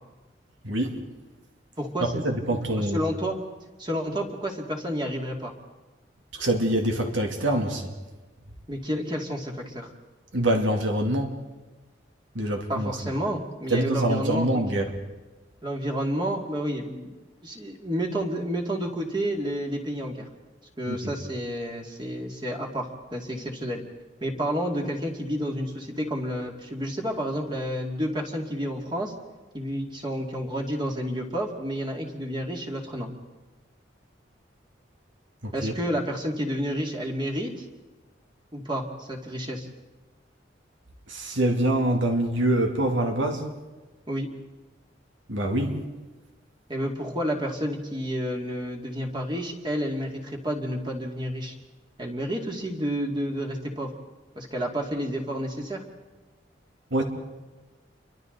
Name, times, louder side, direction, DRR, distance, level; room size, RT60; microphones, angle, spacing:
voice 1, 0.6-0.9 2.0-3.0 6.3-7.9 10.3-11.4 12.3-12.9 13.7-14.8 20.9-21.1 35.4-35.8 41.1-43.5 45.3-45.7 56.9-57.0, right 1 dB, 85° right, 3 dB, 2.8 m, -25 dB
voice 2, 1.8-3.4 3.8-5.5 8.7-9.9 12.7-14.6 15.6-17.2 17.4-20.3 20.8-23.8 24.2-29.1 29.5-33.1 35.5-37.6 38.5-39.7 44.1-44.3 46.7-51.6 52.0-53.9 54.3-55.8, equal, 25° right, 1 dB, 2.4 m, -30 dB
29.5 x 24.0 x 4.0 m, 1.2 s
head